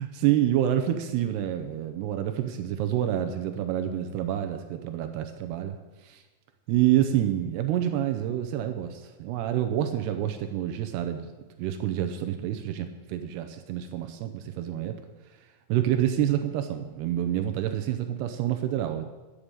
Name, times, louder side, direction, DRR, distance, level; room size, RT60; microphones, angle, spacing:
voice 1, 0.0-5.8 6.0-6.2 6.7-11.3 11.6-15.0 15.7-19.1, right 11 dB, 80° right, 7 dB, 2.4 m, -27 dB
11.0 x 6.6 x 8.9 m, 1.2 s
omnidirectional pair, 5.4 m